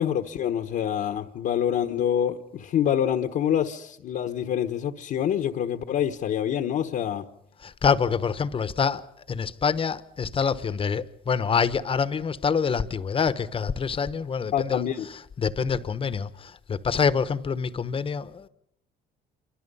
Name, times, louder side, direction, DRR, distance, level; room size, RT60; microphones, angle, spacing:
voice 1, 0.0-7.2 14.5-15.1, left 9 dB, 60° left, 1.2 m, -26 dB
voice 2, 7.6-9.0 9.3-18.5, left 6 dB, 35° left, 1.1 m, -26 dB
27.5 x 24.5 x 5.6 m
cardioid pair, 110°, 17 cm